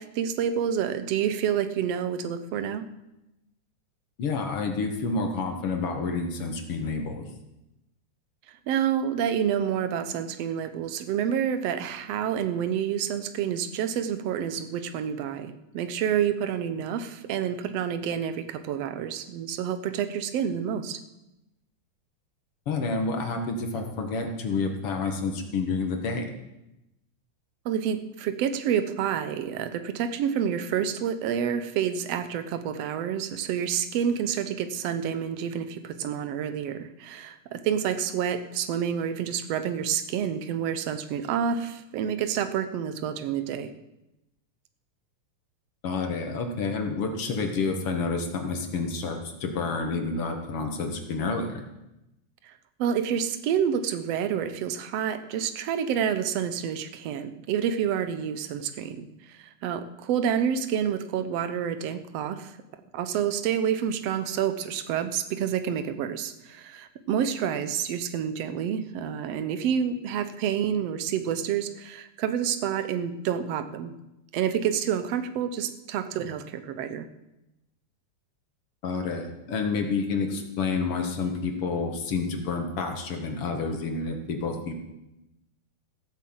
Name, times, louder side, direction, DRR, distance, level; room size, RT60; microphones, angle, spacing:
voice 1, 0.0-2.8 8.5-21.0 27.7-43.7 52.4-52.5 52.8-62.6 62.9-74.0 74.3-77.1, right 8 dB, 65° right, 10 dB, 1.7 m, -28 dB
voice 2, 4.2-7.3 22.7-26.3 45.8-51.6 78.8-84.7, left 4 dB, 55° left, 4 dB, 2.2 m, -29 dB
16.0 x 8.0 x 7.8 m, 0.93 s
omnidirectional pair, 3.5 m